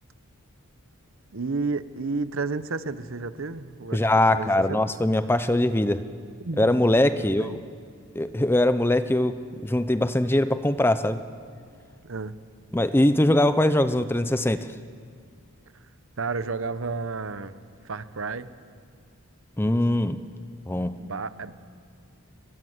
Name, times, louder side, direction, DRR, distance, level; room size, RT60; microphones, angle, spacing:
voice 1, 1.3-4.8 6.4-6.8 7.2-7.6 12.0-12.4 16.2-17.6 17.8-18.6 21.0-21.7, right 4 dB, 60° right, 14 dB, 0.8 m, -32 dB
voice 2, 3.9-6.0 6.6-7.6 8.2-9.3 9.6-11.2 12.7-14.7 19.6-20.2 20.7-21.0, left 1 dB, 10° left, 12 dB, 0.5 m, -22 dB
22.0 x 20.5 x 8.0 m, 2.2 s
head